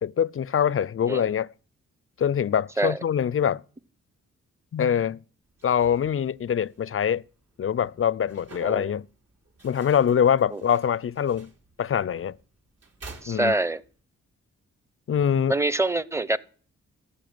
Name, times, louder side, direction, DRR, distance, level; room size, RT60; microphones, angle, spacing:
voice 1, 0.0-1.5 2.2-3.6 4.7-5.2 5.6-7.2 7.6-9.1 9.6-11.5 11.8-12.4 13.3-13.5 15.1-15.5, left 8 dB, 45° left, 0.5 m, -24 dB
sound 1, 5.4-14.0, right 3 dB, 60° right, 5.0 m, -51 dB
voice 2, 8.6-8.9 10.5-10.6 13.2-13.8 15.5-16.4, right 2 dB, 10° right, 0.9 m, -25 dB
14.5 x 6.6 x 9.3 m
cardioid pair, 60°, 29 cm